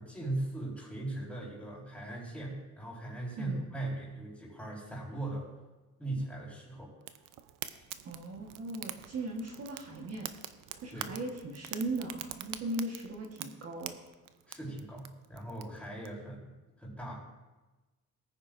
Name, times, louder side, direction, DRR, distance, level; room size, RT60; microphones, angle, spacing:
voice 1, 0.0-5.5 6.0-6.9 10.9-11.1 14.5-16.5 16.8-17.2, right 2 dB, 5° left, -5 dB, 4.4 m, -39 dB
Fire, 7.1-16.1, right 12 dB, 85° right, 0.7 m, -45 dB
voice 2, 8.0-10.3 10.8-14.0, right 2 dB, 50° right, 0 dB, 1.4 m, -38 dB
19.0 x 9.7 x 2.6 m, 1.2 s
cardioid pair, 125°, 32 cm